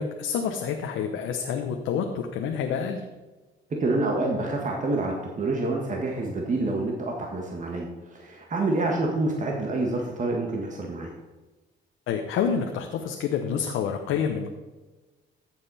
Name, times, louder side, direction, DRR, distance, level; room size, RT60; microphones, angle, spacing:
voice 1, 0.0-3.0 12.1-14.5, left 7 dB, 90° left, 3 dB, 1.0 m, -28 dB
voice 2, 3.8-11.1, right 2 dB, 40° right, 0 dB, 1.8 m, -27 dB
14.5 x 7.7 x 4.2 m, 1.2 s
cardioid pair, 90°, 20 cm